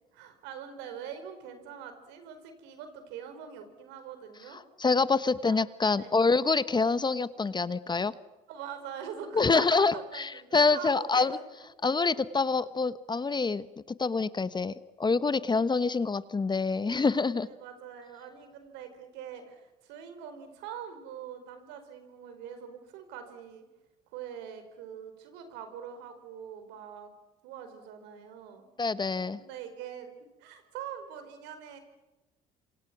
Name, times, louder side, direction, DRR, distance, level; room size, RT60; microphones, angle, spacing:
voice 1, 0.1-4.6 5.5-5.6 6.0-6.1 8.5-11.4 17.4-23.7 24.1-27.1 27.4-28.6 29.3-30.1 30.4-31.8, right 8 dB, 75° right, 8 dB, 4.7 m, -43 dB
voice 2, 4.8-8.1 9.3-11.4 11.8-13.7 14.0-17.5 28.8-29.4, left 4 dB, 25° left, 15 dB, 1.1 m, -26 dB
27.5 x 26.0 x 6.1 m, 1.1 s
hypercardioid pair, 70°, 18 cm